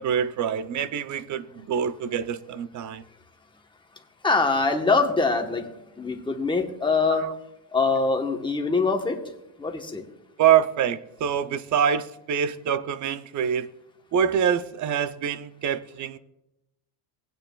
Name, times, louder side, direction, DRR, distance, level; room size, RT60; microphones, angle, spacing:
voice 1, 0.0-3.0 7.2-7.3 10.4-13.7 14.1-16.2, right 8 dB, 40° right, 0.5 m, -25 dB
voice 2, 4.2-5.7 6.0-7.3 7.7-9.2 9.6-10.0, left 4 dB, 10° left, 1.0 m, -23 dB
18.5 x 9.0 x 2.3 m
cardioid pair, 120°, 47 cm